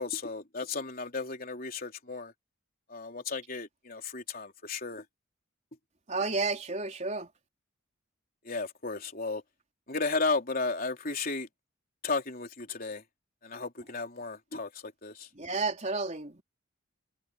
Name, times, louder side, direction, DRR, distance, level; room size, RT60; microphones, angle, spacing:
voice 1, 0.0-2.3 2.9-5.0 8.5-9.4 9.9-11.5 12.0-13.0 13.4-14.7 15.0-15.3, left 3 dB, 45° left, 4.0 m, -34 dB
voice 2, 6.1-7.3 15.3-16.4, right 3 dB, 35° right, 4.2 m, -31 dB
head